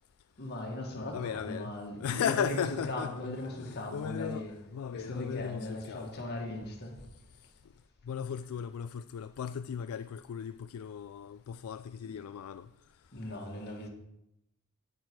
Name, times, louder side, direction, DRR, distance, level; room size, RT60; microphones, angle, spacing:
voice 1, 0.4-4.6 4.9-7.0 12.0-12.1 13.1-13.9, left 1 dB, 50° left, 2.0 m, -38 dB
voice 2, 1.1-1.7 2.0-6.1 8.1-12.7, left 8 dB, 70° left, 0.3 m, -36 dB
9.1 x 9.0 x 4.7 m
head